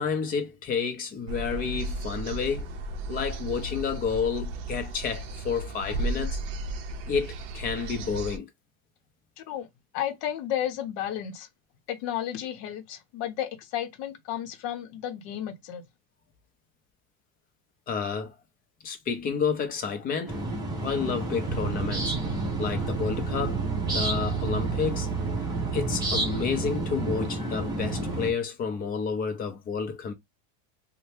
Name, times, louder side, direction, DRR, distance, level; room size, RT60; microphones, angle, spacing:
voice 1, 0.0-2.7 3.1-6.4 7.1-8.5 17.9-18.3 18.8-20.4 20.8-22.2 22.6-25.1 25.7-30.1, left 6 dB, 20° left, 0.5 m, -30 dB
sound 1, 1.3-8.4, right 2 dB, 50° right, 0.6 m, -34 dB
voice 2, 9.4-9.7 9.9-11.5 11.9-15.8, left 11 dB, 55° left, 0.7 m, -33 dB
sound 2, 20.3-28.3, right 1 dB, 10° right, 0.9 m, -31 dB
sound 3, 21.5-27.3, right 10 dB, 90° right, 0.6 m, -33 dB
2.7 x 2.1 x 3.2 m
supercardioid pair, 155°, 41 cm